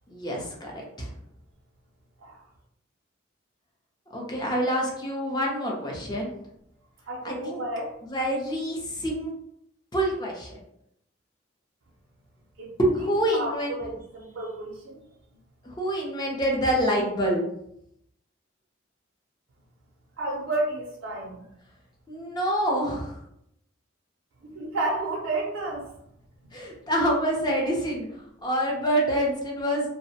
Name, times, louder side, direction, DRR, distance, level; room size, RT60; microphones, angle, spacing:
voice 1, 0.1-1.1 4.1-6.3 7.2-7.6 8.0-9.3 9.9-10.6 12.8-13.7 15.6-17.4 22.1-23.2 26.5-28.1 28.4-29.9, equal, 20° left, -1 dB, 0.5 m, -26 dB
voice 2, 7.1-7.9 12.6-12.7 13.0-15.0 20.2-21.4 24.4-25.9, right 2 dB, 80° right, -4 dB, 0.5 m, -31 dB
2.4 x 2.0 x 2.7 m, 0.77 s
head